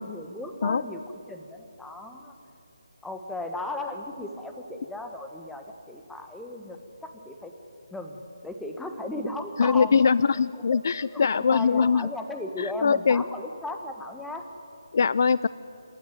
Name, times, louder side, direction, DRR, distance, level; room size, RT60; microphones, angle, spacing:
voice 1, 0.0-2.3 3.0-7.5 7.9-10.0 10.5-10.8 11.1-14.4, left 1 dB, 5° left, 5 dB, 1.4 m, -36 dB
voice 2, 9.6-12.1 12.6-13.2 14.9-15.5, left 5 dB, 50° left, 19 dB, 0.4 m, -22 dB
28.0 x 12.5 x 9.4 m, 3.0 s
figure-of-eight pair, 155°, 2 cm